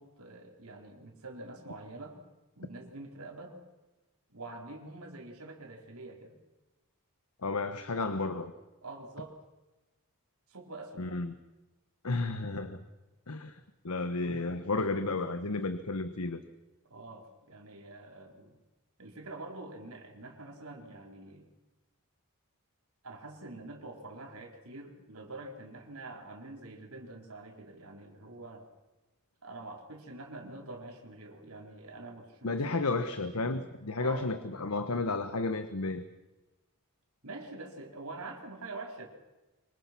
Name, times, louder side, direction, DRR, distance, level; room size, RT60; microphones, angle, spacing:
voice 1, 0.0-2.2 2.6-3.6 4.3-6.4 8.8-9.3 10.5-11.1 16.8-18.6 19.0-21.5 23.0-28.7 29.4-32.8 34.0-34.3 37.2-39.1, right 2 dB, 85° right, 2 dB, 4.3 m, -45 dB
voice 2, 7.4-8.5 11.0-11.3 12.0-12.8 13.3-13.6 13.8-16.4 32.4-36.0, left 3 dB, 90° left, 10 dB, 1.2 m, -32 dB
25.0 x 24.5 x 6.0 m, 1.1 s
head